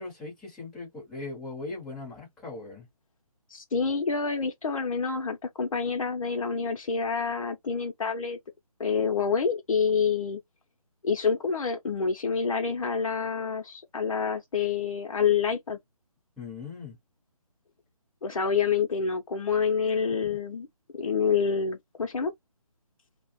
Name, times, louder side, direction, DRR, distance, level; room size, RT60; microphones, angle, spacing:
voice 1, 0.0-2.9 16.4-17.0 20.1-20.4, left 3 dB, 5° left, 0.7 m, -39 dB
voice 2, 3.5-8.4 8.8-10.4 11.0-15.8 18.2-20.7 20.9-22.3, left 5 dB, 60° left, 0.6 m, -27 dB
2.3 x 2.0 x 2.9 m
figure-of-eight pair, 160°, 19 cm